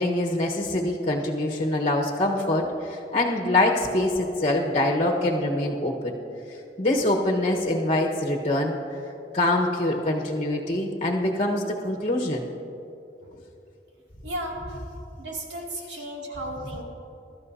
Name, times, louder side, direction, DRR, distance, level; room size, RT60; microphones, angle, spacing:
voice 1, 0.0-6.1 6.8-8.7 9.3-12.5, left 1 dB, 40° left, 0 dB, 1.2 m, -24 dB
voice 2, 14.2-14.6 15.2-16.8, right 1 dB, 75° right, -2 dB, 2.5 m, -34 dB
21.5 x 13.0 x 2.8 m, 2.7 s
head